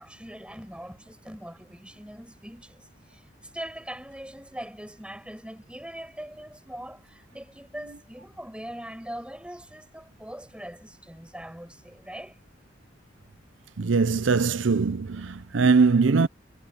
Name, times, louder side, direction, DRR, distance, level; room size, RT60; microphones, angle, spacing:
voice 1, 0.0-3.2 3.5-12.4, equal, 5° right, 7.4 m, -41 dB
voice 2, 13.8-16.3, right 4 dB, 75° right, 0.6 m, -21 dB
head